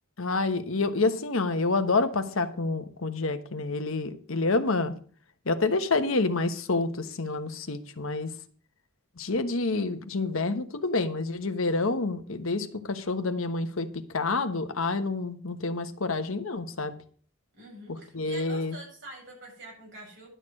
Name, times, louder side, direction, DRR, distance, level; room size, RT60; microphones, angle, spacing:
voice 1, 0.2-4.9 5.5-8.3 9.2-13.9 14.1-17.0 17.9-18.8, left 3 dB, 65° left, 9 dB, 1.1 m, -28 dB
voice 2, 17.5-20.3, right 1 dB, 55° right, -2 dB, 6.6 m, -45 dB
11.5 x 6.7 x 6.3 m, 0.44 s
head